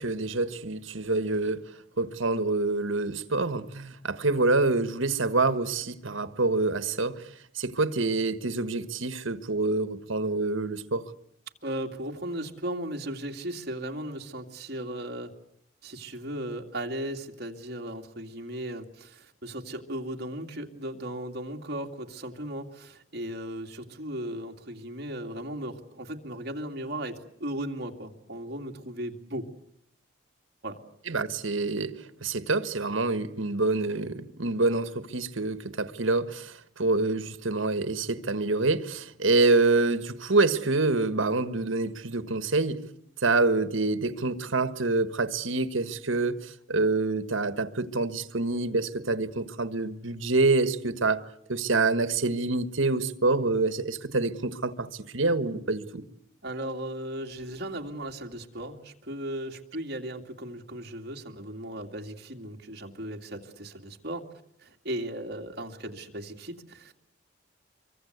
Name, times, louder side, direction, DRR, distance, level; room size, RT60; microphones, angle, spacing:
voice 1, 0.0-1.6 2.0-7.2 7.5-11.1 31.1-31.9 32.2-42.8 43.2-54.9 55.1-56.0, right 3 dB, 85° right, 1.6 m, -26 dB
voice 2, 11.6-15.3 15.8-29.5 30.6-30.8 56.4-64.3 64.6-66.9, right 1 dB, 55° right, 2.5 m, -36 dB
26.0 x 24.0 x 8.1 m
head